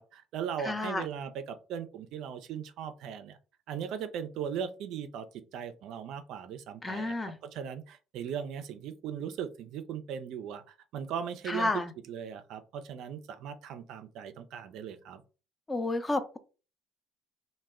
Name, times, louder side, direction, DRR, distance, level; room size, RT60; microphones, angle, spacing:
voice 1, 0.0-3.4 3.7-5.3 5.5-10.6 10.9-15.2, right 8 dB, 65° right, 9 dB, 0.3 m, -38 dB
voice 2, 0.6-1.0 6.8-7.4 11.5-11.9 15.7-16.4, left 2 dB, 20° left, 10 dB, 0.4 m, -31 dB
2.1 x 2.0 x 3.4 m, 0.34 s
hypercardioid pair, 65°, 0 cm